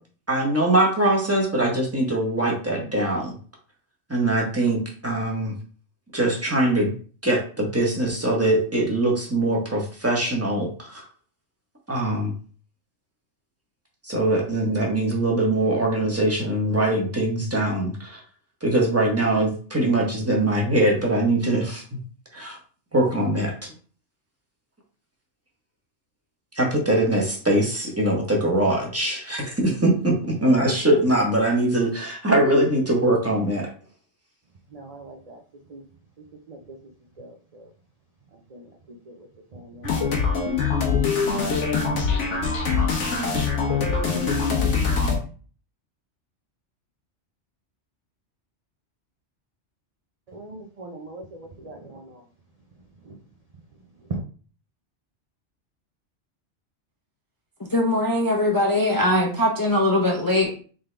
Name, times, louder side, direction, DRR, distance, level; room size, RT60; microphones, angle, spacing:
voice 1, 0.3-3.4 4.1-5.5 6.1-6.9 7.2-11.0 11.9-12.3 14.0-18.2 18.6-22.0 22.3-22.6 22.9-23.7 26.5-30.1 30.4-33.7, right 1 dB, 15° right, -1 dB, 1.1 m, -22 dB
voice 2, 34.7-35.4 35.7-35.8 36.5-36.6 37.2-37.6 38.5-38.6 39.1-39.3 39.5-39.9 50.3-52.2 53.1-53.2 54.1-54.2, right 3 dB, 40° right, 0 dB, 0.6 m, -39 dB
sound 1, 39.8-45.2, left 5 dB, 90° left, 1.4 m, -23 dB
voice 3, 57.7-60.6, left 1 dB, 20° left, -1 dB, 0.6 m, -21 dB
3.9 x 3.6 x 3.3 m, 0.41 s
omnidirectional pair, 1.2 m